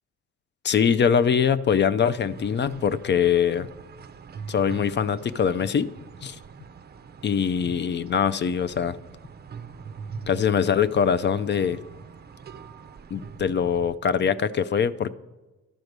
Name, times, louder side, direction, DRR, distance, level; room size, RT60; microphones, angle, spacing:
voice 1, 0.6-3.7 4.5-5.9 6.2-6.4 7.2-9.0 10.3-11.8 13.1-15.1, left 7 dB, 40° left, 15 dB, 0.4 m, -23 dB
sound 1, 2.2-14.0, right 5 dB, 35° right, 0.5 m, -43 dB
12.0 x 4.6 x 6.6 m, 1.1 s
cardioid pair, 90°, 30 cm